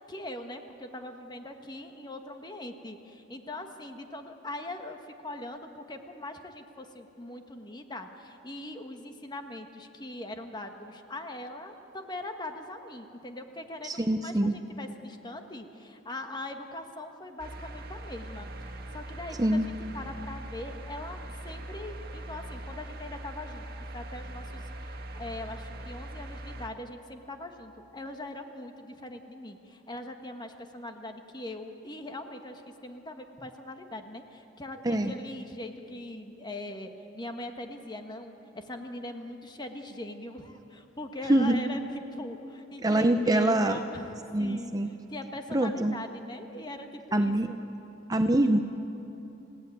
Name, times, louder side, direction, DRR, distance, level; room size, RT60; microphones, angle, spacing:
voice 1, 0.0-5.0 5.2-23.6 23.9-44.1 44.4-44.8 45.1-47.6, left 1 dB, 20° left, 5 dB, 1.6 m, -41 dB
voice 2, 13.8-14.6 19.4-19.7 34.8-35.1 41.3-41.6 42.8-43.8 44.3-44.9 45.5-45.9 47.1-47.5 48.1-48.6, right 1 dB, 20° right, 7 dB, 0.7 m, -24 dB
sound 1, 17.4-26.7, right 1 dB, 50° right, 1.8 m, -41 dB
29.0 x 16.5 x 9.3 m, 3.0 s
head